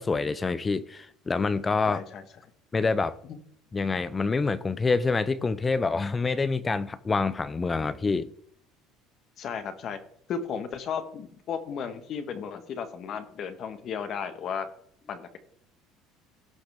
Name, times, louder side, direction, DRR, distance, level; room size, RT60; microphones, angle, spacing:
voice 1, 0.0-2.0 2.7-3.2 3.7-8.3, left 4 dB, 20° left, 0.5 m, -26 dB
voice 2, 1.9-2.2 3.2-3.4 9.4-10.0 10.3-14.7 15.1-15.4, left 7 dB, 45° left, 1.4 m, -34 dB
16.5 x 5.9 x 3.5 m
cardioid pair, 135°, 0 cm